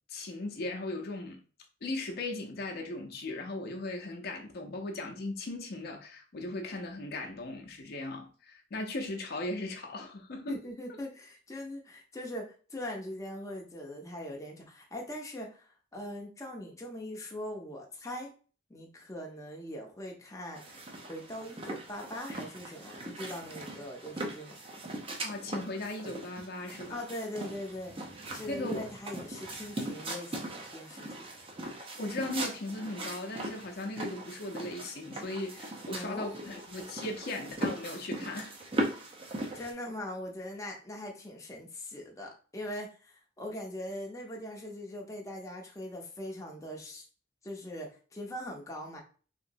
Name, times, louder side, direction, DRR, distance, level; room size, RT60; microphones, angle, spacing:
voice 1, 0.1-1.4 1.8-10.6 25.2-27.1 28.5-28.9 32.0-38.6, left 2 dB, 55° left, 0.6 m, -38 dB
voice 2, 10.5-18.3 18.7-20.6 21.1-24.6 26.9-27.9 28.3-31.3 35.9-36.3 39.5-47.1 47.4-49.0, left 1 dB, 20° left, 0.6 m, -41 dB
sound 1, 20.5-39.7, right 1 dB, 30° right, 0.6 m, -39 dB
3.1 x 2.9 x 2.6 m
head